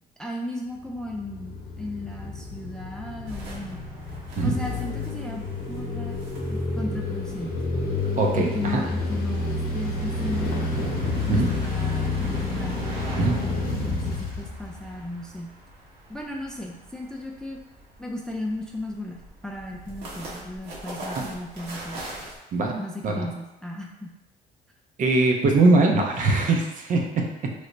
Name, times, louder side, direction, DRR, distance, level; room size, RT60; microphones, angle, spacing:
voice 1, 0.2-3.8 4.4-6.2 6.5-7.6 8.3-11.0 11.3-12.8 13.4-15.5 16.1-17.6 18.0-22.0 22.8-24.1, left 1 dB, 5° left, -1 dB, 0.3 m, -35 dB
sound 1, 0.8-15.2, left 2 dB, 60° left, 0.8 m, -29 dB
sound 2, 3.2-22.4, right 1 dB, 80° right, 1.0 m, -43 dB
voice 2, 8.2-8.8 11.3-11.5 13.2-13.4 21.1-21.3 22.5-23.2 25.0-27.5, right 3 dB, 50° right, 2 dB, 0.6 m, -22 dB
3.1 x 2.1 x 3.8 m, 0.99 s
cardioid pair, 110°, 17 cm